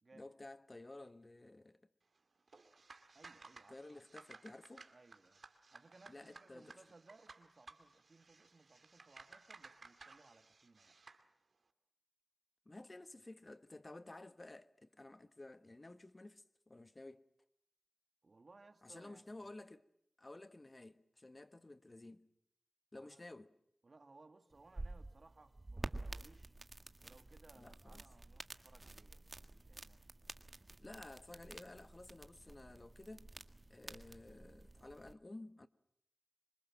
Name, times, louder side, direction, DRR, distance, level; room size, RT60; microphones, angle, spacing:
voice 1, 0.1-1.8 3.7-4.9 6.1-6.8 12.6-17.2 18.8-19.8 20.2-22.3 22.9-23.5 27.5-28.0 30.8-33.3 33.7-35.7, left 2 dB, 40° left, 1.2 m, -53 dB
sound 1, 2.5-11.2, right 3 dB, 75° right, 2.2 m, -59 dB
voice 2, 3.1-4.0 4.8-5.4 5.7-11.0 18.2-19.5 22.9-23.3 23.8-26.5 27.0-30.4, right 3 dB, 60° right, 2.1 m, -64 dB
sound 2, 24.5-35.1, right 2 dB, 40° right, 1.6 m, -50 dB
26.5 x 24.5 x 7.5 m
wide cardioid pair, 55°, 0 cm